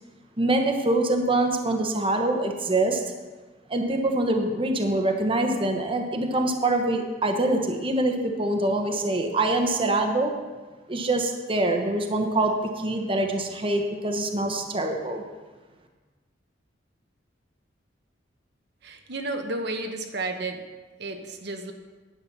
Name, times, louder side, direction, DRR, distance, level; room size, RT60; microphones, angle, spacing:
voice 1, 0.4-3.0 3.7-10.3 10.9-15.2, right 2 dB, 30° right, 4 dB, 1.1 m, -24 dB
voice 2, 18.8-20.6 21.0-21.7, right 2 dB, 65° right, 4 dB, 1.0 m, -32 dB
10.5 x 8.8 x 6.0 m, 1.3 s
head